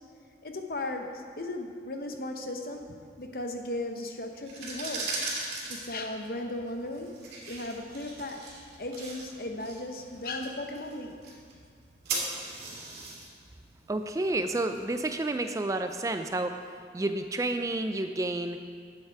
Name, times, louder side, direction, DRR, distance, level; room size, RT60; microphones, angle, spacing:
voice 1, 0.4-5.1 5.7-7.1 7.5-8.4 8.8-11.4, left 1 dB, 55° left, 4 dB, 0.9 m, -36 dB
sound 1, 4.4-15.2, right 3 dB, 65° right, 2.5 m, -39 dB
voice 2, 13.9-16.6 16.9-18.6, right 2 dB, 20° right, 7 dB, 0.3 m, -30 dB
11.5 x 8.1 x 4.6 m, 2.1 s
head